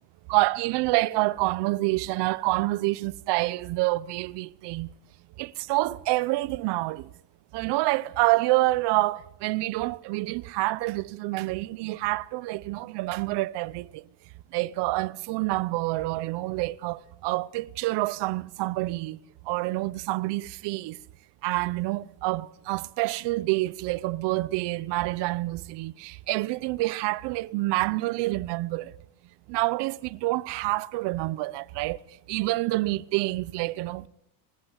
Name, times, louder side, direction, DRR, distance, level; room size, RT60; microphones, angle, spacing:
voice 1, 0.3-4.9 5.4-7.1 7.5-14.0 14.5-19.2 19.5-21.0 21.4-28.9 29.5-32.0 32.3-34.1, right 20 dB, 55° right, 0.9 m, -27 dB
20.5 x 17.0 x 8.0 m
cardioid pair, 155°, 49 cm